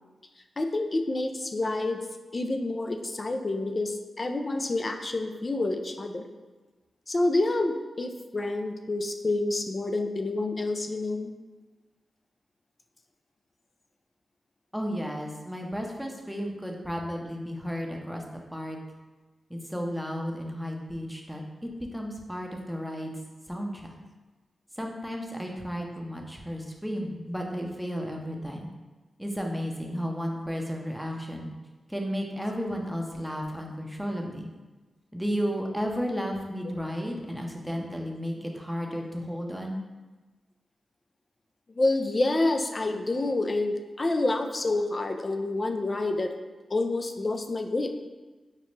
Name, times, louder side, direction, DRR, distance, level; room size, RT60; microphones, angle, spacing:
voice 1, 0.6-2.0 2.3-6.3 7.1-11.3 41.8-46.3 46.7-47.9, left 2 dB, 40° left, 6 dB, 0.4 m, -28 dB
voice 2, 14.7-18.2 18.5-18.8 19.5-23.1 23.5-23.9 24.8-28.7 29.2-31.5 31.9-34.5 35.1-39.8, equal, ahead, 1 dB, 0.7 m, -33 dB
5.1 x 2.1 x 3.1 m, 1.2 s
cardioid pair, 50°, 0 cm